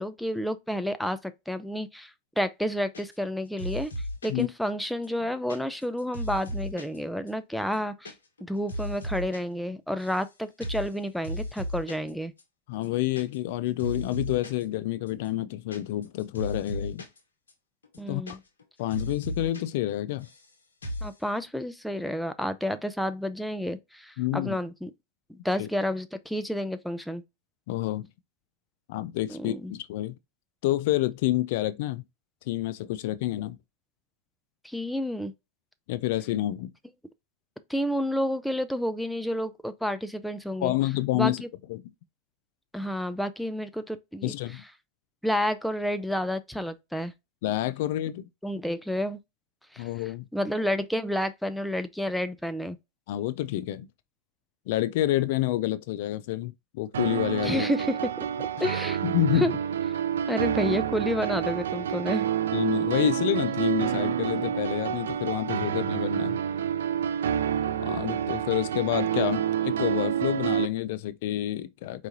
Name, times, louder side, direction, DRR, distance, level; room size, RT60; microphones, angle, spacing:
voice 1, 0.0-2.1 2.4-8.1 8.4-12.3 18.0-18.4 21.0-24.9 25.3-27.2 29.3-29.7 34.6-35.3 37.7-40.7 41.1-41.5 42.7-44.3 45.2-47.1 48.4-49.2 49.7-49.9 50.3-52.8 57.4-59.0 59.3-59.5 60.3-62.3, equal, ahead, 0.6 m, -30 dB
sound 1, 2.9-3.3 3.6-4.4 4.9-7.0 7.3-7.4 7.6-8.1 8.4-9.4 9.7-10.3 10.6-10.9 11.2-12.1 12.4-12.5 12.7-13.5 13.8-14.6 15.1-17.2 17.5-17.6 17.8-18.6 18.9-19.6 19.9-20.5 20.8-21.1, equal, 90° left, 1.3 m, -36 dB
voice 2, 12.7-17.0 18.1-18.4 18.8-20.3 24.2-24.6 25.6-25.7 27.7-28.1 28.9-30.1 30.6-32.0 32.5-33.6 35.9-36.7 40.6-41.4 41.7-41.8 44.2-44.6 47.4-48.3 49.8-50.2 53.1-53.9 54.7-57.7 59.0-59.5 62.5-66.4 67.8-72.1, left 14 dB, 65° left, 0.3 m, -28 dB
sound 2, 56.9-70.6, right 9 dB, 80° right, 0.3 m, -28 dB
4.6 x 3.1 x 2.7 m
hypercardioid pair, 105°, 0 cm